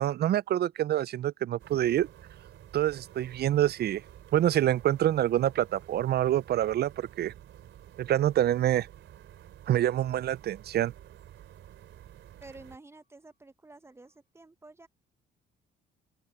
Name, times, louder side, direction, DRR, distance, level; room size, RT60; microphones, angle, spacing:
voice 1, 0.0-2.1 2.7-4.0 4.3-7.3 8.0-8.9 9.7-10.9, right 12 dB, 55° right, 0.4 m, -26 dB
sound 1, 1.6-12.8, right 11 dB, 75° right, 3.8 m, -51 dB
sound 2, 11.1-14.3, left 1 dB, 55° left, 6.9 m, -84 dB
voice 2, 12.4-14.9, right 2 dB, 15° right, 0.9 m, -51 dB
open air
cardioid pair, 90°, 20 cm